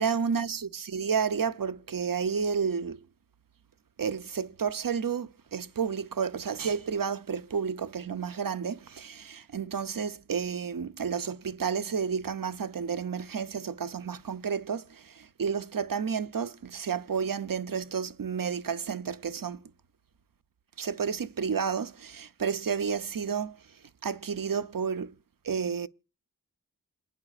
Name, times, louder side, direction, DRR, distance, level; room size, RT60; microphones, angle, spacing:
voice 1, 0.0-3.0 4.0-19.6 20.8-25.2 25.4-25.9, right 6 dB, 65° right, 0.7 m, -31 dB
28.0 x 9.6 x 2.4 m
wide cardioid pair, 45°, 37 cm